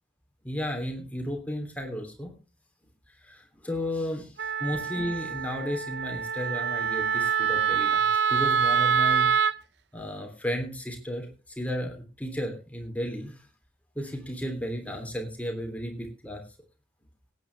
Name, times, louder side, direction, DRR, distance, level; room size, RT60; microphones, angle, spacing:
voice 1, 0.4-2.3 3.2-4.3 4.6-9.3 9.9-11.3 11.6-13.3 13.9-16.4, equal, 10° left, 2 dB, 3.1 m, -33 dB
Wind instrument woodwind instrument, 4.4-9.6, right 6 dB, 70° right, 0.6 m, -25 dB
18.0 x 9.5 x 3.4 m, 0.33 s
head